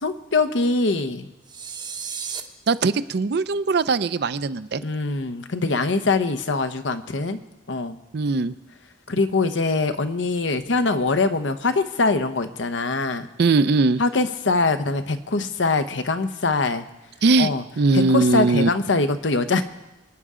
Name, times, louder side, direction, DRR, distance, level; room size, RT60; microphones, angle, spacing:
voice 1, 0.0-1.3 4.8-7.4 7.7-8.0 9.1-13.3 14.0-16.8 17.4-17.6 17.9-19.6, left 3 dB, 90° left, 9 dB, 0.9 m, -23 dB
sound 1, 1.5-2.4, right 6 dB, 25° right, 0.7 m, -33 dB
voice 2, 2.7-4.8 8.1-8.5 13.4-14.0 17.2-17.5 17.8-18.7, right 3 dB, 60° right, 14 dB, 0.5 m, -20 dB
26.0 x 9.5 x 3.7 m, 1.0 s
head